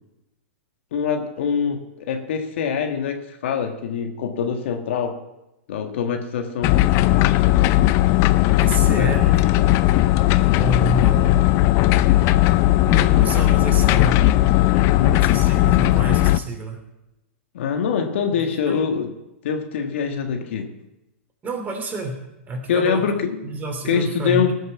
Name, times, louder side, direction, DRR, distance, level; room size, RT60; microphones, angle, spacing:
voice 1, 0.9-5.2 5.7-6.8 9.0-9.1 14.7-15.2 17.5-19.1 19.4-20.7 22.7-23.4 23.8-24.5, left 6 dB, 65° left, 5 dB, 1.5 m, -24 dB
sound 1, 6.6-16.4, left 16 dB, 40° left, 0.5 m, -17 dB
voice 2, 8.6-9.8 10.6-11.4 12.8-14.3 15.1-16.8 18.3-18.9 21.4-23.1 23.4-24.5, right 1 dB, 25° right, 3 dB, 3.0 m, -28 dB
18.5 x 6.5 x 6.0 m, 0.91 s
hypercardioid pair, 110°, 7 cm